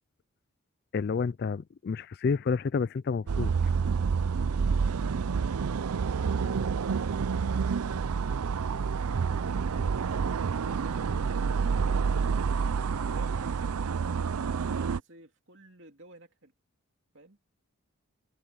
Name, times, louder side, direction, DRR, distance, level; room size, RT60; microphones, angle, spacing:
voice 1, 0.9-3.7, left 5 dB, 45° left, 0.3 m, -30 dB
sound 1, 3.3-15.0, right 5 dB, 85° right, 0.5 m, -28 dB
voice 2, 9.6-11.5 13.0-16.5 17.1-17.4, right 2 dB, 55° right, 3.2 m, -53 dB
head